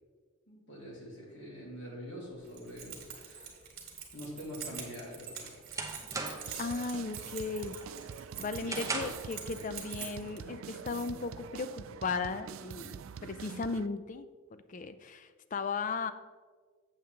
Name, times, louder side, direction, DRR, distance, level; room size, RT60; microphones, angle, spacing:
voice 1, 0.5-3.5 4.1-5.5, equal, 55° left, -4 dB, 2.6 m, -45 dB
Keys jangling, 2.5-10.4, right 7 dB, 45° right, 1.7 m, -45 dB
sound 1, 5.4-6.6 7.0-7.4 7.8-9.3, right 3 dB, 15° right, 0.7 m, -38 dB
sound 2, 6.5-13.9, right 7 dB, 75° right, 0.3 m, -45 dB
voice 2, 6.6-7.8 8.4-16.1, left 4 dB, 35° left, 12 dB, 0.4 m, -36 dB
8.0 x 7.6 x 3.3 m, 1.5 s
head